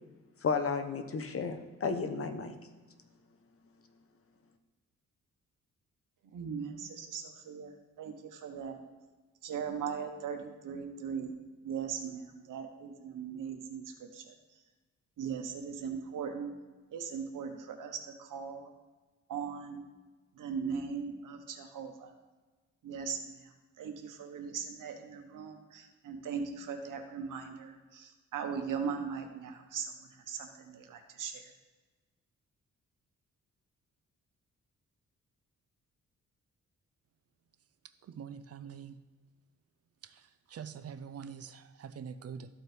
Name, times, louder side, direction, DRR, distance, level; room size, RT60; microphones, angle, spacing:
voice 1, 0.4-2.5, left 5 dB, 45° left, 6 dB, 0.9 m, -33 dB
voice 2, 6.3-7.7 8.0-8.8 9.4-11.3 11.6-13.8 14.1-14.2 15.2-16.5 16.9-18.7 19.3-19.8 20.4-22.1 22.8-23.2 23.8-29.9 30.3-31.3, right 6 dB, 90° right, 5 dB, 1.1 m, -39 dB
voice 3, 38.0-39.0 40.0-42.5, right 7 dB, 50° right, 12 dB, 0.5 m, -45 dB
13.5 x 4.5 x 3.3 m, 1.3 s
cardioid pair, 90°, 30 cm